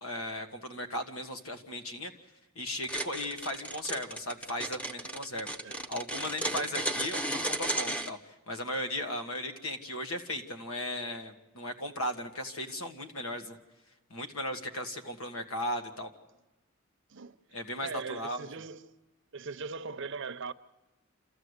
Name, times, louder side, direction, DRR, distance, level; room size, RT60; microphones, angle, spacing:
voice 1, 0.0-2.1 2.6-13.6 14.1-16.1 17.5-18.5, left 1 dB, 80° left, 1.7 m, -37 dB
sound 1, 2.8-8.1, right 1 dB, 5° left, 0.8 m, -34 dB
voice 2, 17.8-18.9 19.3-20.5, right 5 dB, 60° right, 0.7 m, -40 dB
28.0 x 14.0 x 8.1 m
head